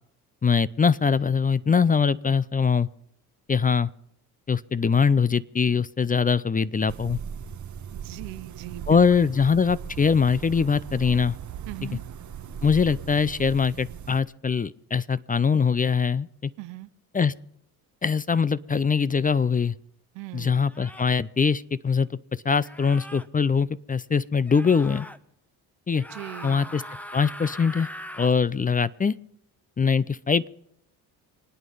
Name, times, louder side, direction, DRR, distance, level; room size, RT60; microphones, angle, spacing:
voice 1, 0.4-2.9 3.5-3.9 4.5-7.2 8.9-11.4 12.6-16.5 17.1-17.3 18.0-19.7 20.3-25.1 25.9-26.0 26.4-26.8 27.1-27.9 28.2-29.1 29.8-30.5, left 5 dB, 20° left, 18 dB, 0.5 m, -22 dB
sound 1, 6.9-14.2, right 8 dB, 40° right, 0.9 m, -38 dB
voice 2, 7.9-9.3 11.7-12.0 16.6-16.9 20.1-20.7 26.1-26.8, right 18 dB, 85° right, 14 dB, 0.8 m, -40 dB
sound 2, 19.3-19.5 20.7-21.2 22.6-23.3 24.5-25.2 25.9-28.4, equal, 5° left, 0.9 m, -41 dB
26.5 x 9.2 x 5.5 m, 0.70 s
supercardioid pair, 65°, 43 cm